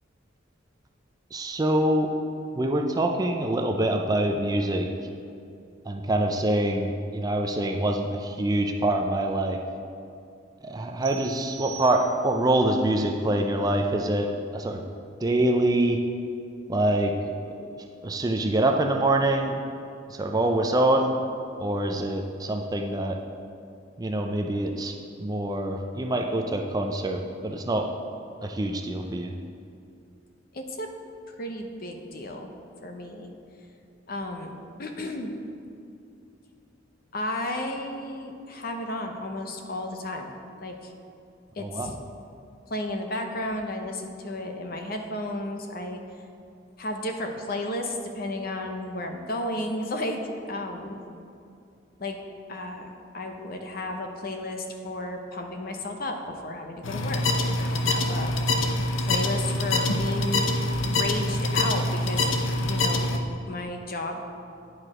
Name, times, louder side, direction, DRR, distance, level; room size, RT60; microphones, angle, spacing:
voice 1, 1.3-2.1 2.5-4.9 5.9-9.6 10.6-14.8 15.2-16.0 16.7-17.1 18.0-19.5 20.1-21.2 21.6-23.2 24.0-27.9 28.4-29.3 41.6-41.9, right 1 dB, 20° right, 3 dB, 0.4 m, -25 dB
sound 1, 11.0-12.5, right 10 dB, 80° right, 0.7 m, -42 dB
voice 2, 30.5-30.9 31.4-32.5 32.8-33.3 34.1-34.5 34.8-35.3 37.1-40.3 40.6-40.9 41.6-41.9 42.7-46.0 46.8-50.2 50.5-51.0 52.0-52.2 52.5-58.3 59.0-60.5 60.9-62.2 62.6-63.1 63.5-64.2, left 1 dB, 50° left, 4 dB, 0.7 m, -33 dB
sound 2, 56.8-63.2, left 2 dB, 85° left, 0.7 m, -25 dB
9.6 x 4.7 x 4.9 m, 2.5 s
head